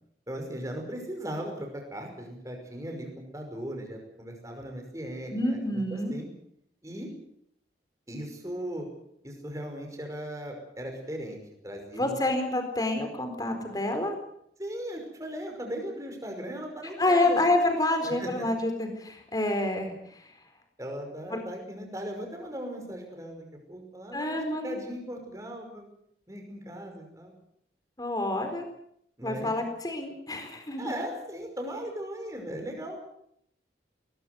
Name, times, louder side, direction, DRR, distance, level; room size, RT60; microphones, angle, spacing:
voice 1, 0.3-3.1 3.3-6.3 6.8-7.1 8.1-8.9 9.2-11.4 11.6-12.2 14.6-17.4 18.0-18.4 20.8-25.9 26.3-27.3 29.2-29.5 30.8-33.0, equal, 20° right, 3 dB, 5.6 m, -38 dB
voice 2, 5.3-6.2 11.9-14.2 17.0-20.2 21.3-21.4 24.1-24.8 28.0-28.7 29.2-30.9, left 2 dB, 20° left, 6 dB, 4.3 m, -28 dB
20.5 x 20.0 x 8.0 m, 0.71 s
head